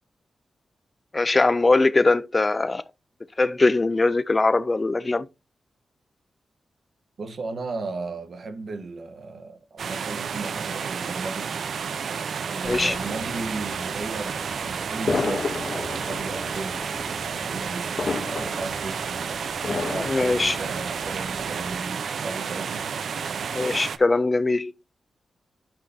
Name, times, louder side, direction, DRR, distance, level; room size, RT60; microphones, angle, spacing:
voice 1, 1.1-2.8 3.4-5.3 12.7-12.9 20.0-20.6 23.5-24.7, left 3 dB, 25° left, 0.3 m, -21 dB
voice 2, 7.2-11.5 12.5-16.8 17.3-19.3 19.9-22.9, right 3 dB, 50° right, 1.1 m, -35 dB
sound 1, 9.8-24.0, right 6 dB, 70° right, 0.5 m, -31 dB
sound 2, 12.6-21.7, left 4 dB, 45° left, 2.3 m, -34 dB
12.0 x 6.5 x 2.7 m
wide cardioid pair, 170°, 0 cm